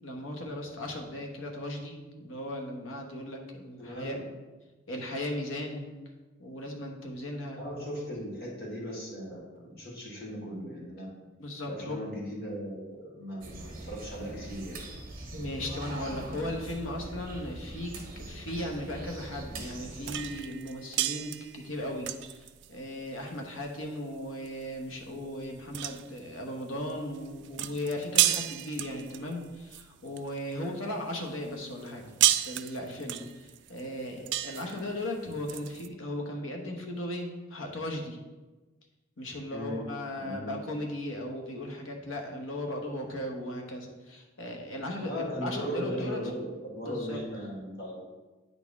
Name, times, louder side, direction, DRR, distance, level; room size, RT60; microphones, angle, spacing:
voice 1, 0.0-4.2 4.9-6.0 6.4-7.6 11.4-12.0 15.3-32.0 32.4-38.2 39.2-46.2 46.8-47.2, left 1 dB, 85° left, 2 dB, 1.1 m, -37 dB
voice 2, 3.8-4.2 7.5-11.1 11.6-14.8 39.5-39.8 40.2-40.6 45.1-48.0, equal, 50° left, -4 dB, 1.9 m, -37 dB
sound 1, 13.4-20.4, right 1 dB, 45° right, 1.3 m, -42 dB
sound 2, 20.1-30.6 31.1-35.9, right 13 dB, 60° right, 0.3 m, -32 dB
9.3 x 4.2 x 3.6 m, 1.2 s
head